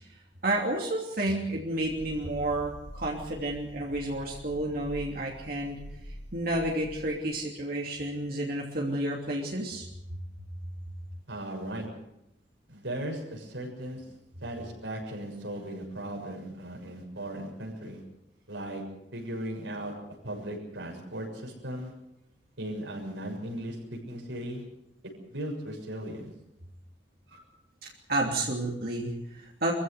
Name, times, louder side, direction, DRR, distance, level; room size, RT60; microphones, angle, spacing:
voice 1, 0.4-5.8 6.3-9.9 27.8-29.7, right 1 dB, 55° right, -2 dB, 3.0 m, -31 dB
sound 1, 1.8-7.2, equal, 55° left, 6.1 m, -46 dB
voice 2, 11.3-11.9 12.7-14.0 14.4-18.0 18.5-18.8 19.1-19.9 20.2-21.9 22.6-24.6 25.3-26.3 27.3-27.4, right 1 dB, 80° right, 0 dB, 6.9 m, -37 dB
24.0 x 15.5 x 8.2 m, 0.81 s
head